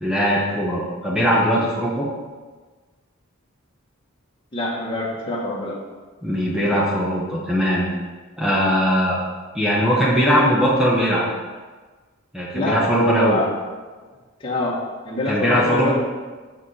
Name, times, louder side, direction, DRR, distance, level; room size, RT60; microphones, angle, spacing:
voice 1, 0.0-2.1 6.2-7.9 8.4-9.2 9.5-11.2 12.3-13.4 15.3-15.9, equal, 5° right, -6 dB, 0.9 m, -20 dB
voice 2, 4.5-5.7 12.5-13.5 14.4-14.8 15.0-15.9, left 1 dB, 25° left, -5 dB, 1.6 m, -24 dB
6.5 x 4.8 x 5.7 m, 1.4 s
head